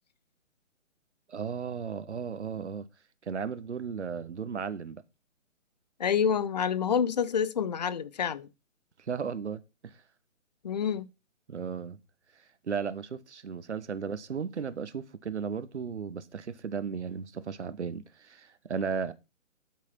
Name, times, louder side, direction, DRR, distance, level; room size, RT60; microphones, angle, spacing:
voice 1, 1.3-2.9 3.2-5.0 9.0-10.0 11.5-12.0 12.3-19.1, right 6 dB, 60° right, 1.2 m, -35 dB
voice 2, 6.0-8.5 10.6-11.1, left 7 dB, 35° left, 0.6 m, -28 dB
12.5 x 6.3 x 4.5 m
figure-of-eight pair, 140°, 39 cm